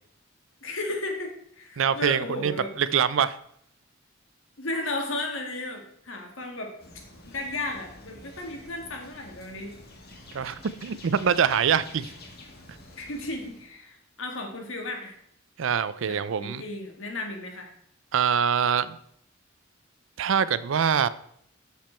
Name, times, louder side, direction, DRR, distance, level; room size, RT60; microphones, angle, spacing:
voice 1, 0.6-2.7 4.6-6.7 7.3-9.7 13.0-15.1 16.1-17.7, left 2 dB, 70° left, 3 dB, 1.7 m, -34 dB
voice 2, 1.8-3.4 10.3-12.1 15.6-16.6 18.1-19.0 20.2-21.1, right 7 dB, 70° right, 16 dB, 0.4 m, -24 dB
sound 1, 6.8-13.7, left 2 dB, 50° left, 1.6 m, -48 dB
7.5 x 7.1 x 4.4 m, 0.69 s
head